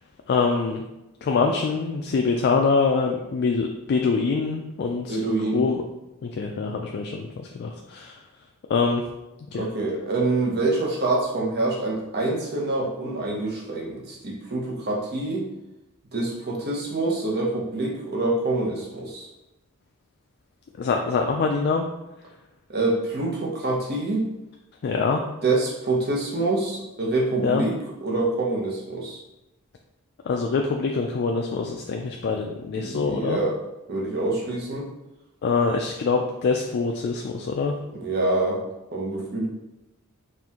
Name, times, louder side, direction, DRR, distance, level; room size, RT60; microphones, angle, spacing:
voice 1, 0.3-0.8 1.2-5.2 5.5-5.8 6.2-8.2 8.7-9.0 9.5-9.7 20.8-21.9 24.8-25.2 27.4-27.6 30.3-33.4 35.4-37.7, left 4 dB, 50° left, 2 dB, 0.3 m, -24 dB
voice 2, 5.1-5.6 9.5-15.5 16.1-19.3 22.7-24.3 25.4-27.7 28.0-29.2 32.7-33.6 33.9-34.9 37.9-38.6 38.9-39.5, right 2 dB, 45° right, -2 dB, 0.9 m, -26 dB
4.3 x 2.5 x 3.6 m, 0.95 s
head